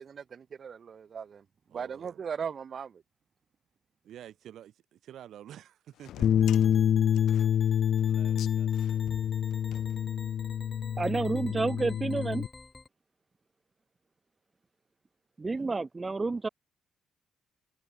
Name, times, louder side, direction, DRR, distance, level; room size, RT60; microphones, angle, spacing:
voice 1, 0.0-1.4 1.7-2.9, right 7 dB, 50° right, 0.3 m, -38 dB
voice 2, 1.7-2.2 4.0-6.5 7.4-7.5 8.0-9.1 15.4-15.7, right 11 dB, 75° right, 3.2 m, -50 dB
sound 1, 6.0-10.5, left 12 dB, 80° left, 2.5 m, -47 dB
Bass guitar, 6.2-12.5, left 9 dB, 65° left, 0.4 m, -27 dB
sound 2, 6.4-12.9, left 3 dB, 25° left, 7.2 m, -50 dB
voice 3, 11.0-12.5 15.4-16.5, right 3 dB, 25° right, 0.7 m, -30 dB
open air
cardioid pair, 90°, 0 cm